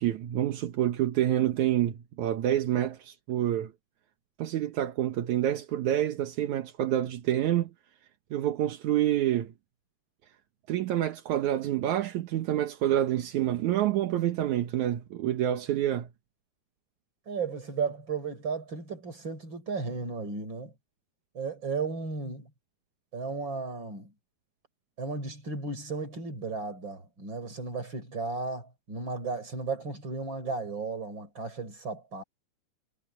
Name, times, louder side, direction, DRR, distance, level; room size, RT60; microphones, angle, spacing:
voice 1, 0.0-3.7 4.4-7.7 8.3-9.5 10.7-16.1, right 12 dB, 75° right, 2.5 m, -27 dB
voice 2, 17.3-20.7 21.3-22.5 23.1-24.1 25.0-32.2, right 4 dB, 40° right, 6.3 m, -34 dB
omnidirectional pair, 3.4 m